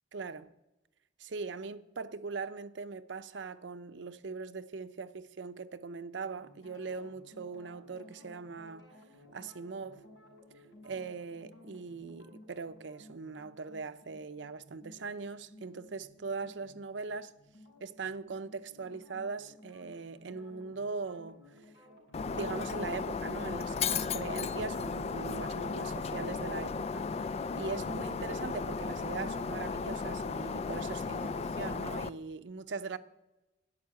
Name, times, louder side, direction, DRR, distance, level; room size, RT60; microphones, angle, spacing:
voice 1, 0.1-0.5 1.2-8.9 9.3-10.0 10.8-17.3 17.8-21.4 22.3-33.0, right 4 dB, 80° right, 0.6 m, -41 dB
sound 1, 6.4-24.6, left 1 dB, 85° left, 5.2 m, -57 dB
Shatter, 22.1-32.1, left 5 dB, 35° left, 0.3 m, -35 dB
11.0 x 7.0 x 9.4 m
head